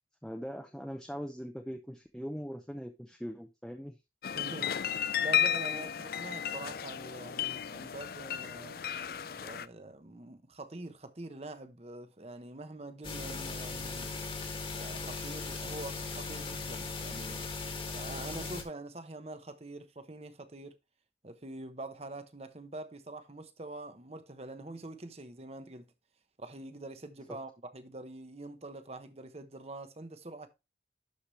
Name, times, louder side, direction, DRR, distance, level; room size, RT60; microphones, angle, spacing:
voice 1, 0.2-4.0 27.3-27.4, equal, 5° left, 0.7 m, -41 dB
sound 1, 4.2-9.7, left 9 dB, 55° left, 0.4 m, -33 dB
voice 2, 4.3-4.8 5.0-8.8 9.4-14.1 14.7-17.4 17.9-20.8 21.2-25.9 26.4-30.5, right 2 dB, 35° right, 1.0 m, -45 dB
sound 2, 13.0-18.6, left 4 dB, 30° left, 1.6 m, -38 dB
12.0 x 4.9 x 3.2 m
head